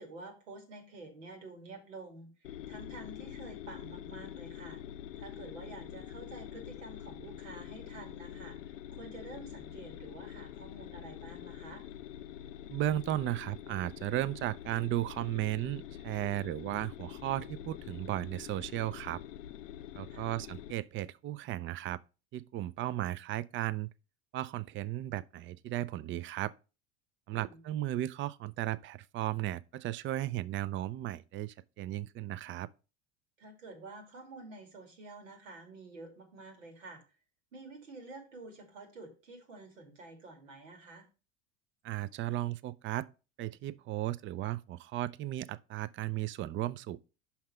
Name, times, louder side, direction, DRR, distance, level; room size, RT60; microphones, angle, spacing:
voice 1, 0.0-4.8 5.2-11.8 20.1-20.3 27.3-27.6 33.4-37.0 37.5-41.1, right 2 dB, 90° right, 2.5 m, -49 dB
sound 1, 2.4-20.7, left 11 dB, 85° left, 0.6 m, -46 dB
voice 2, 12.7-19.2 19.9-22.0 22.3-23.9 24.3-26.5 27.3-32.7 41.8-43.1 43.4-47.0, right 14 dB, 35° right, 0.5 m, -35 dB
5.7 x 5.7 x 4.4 m
hypercardioid pair, 85°, 37 cm